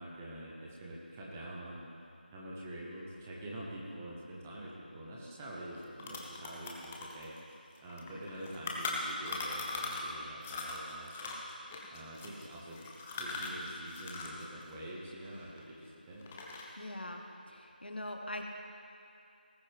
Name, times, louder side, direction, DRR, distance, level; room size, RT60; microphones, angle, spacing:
voice 1, 0.0-1.8 2.3-7.4 7.8-11.4 11.9-16.3, right 1 dB, 10° right, -5 dB, 0.9 m, -46 dB
sound 1, 5.4-5.5 5.7-10.1 10.4-14.4 14.7-15.9 16.2-16.8, left 3 dB, 5° left, 0.4 m, -40 dB
voice 2, 16.8-18.4, left 1 dB, 75° left, 3 dB, 1.4 m, -42 dB
18.5 x 8.5 x 3.5 m, 2.6 s
figure-of-eight pair, 170°, 5 cm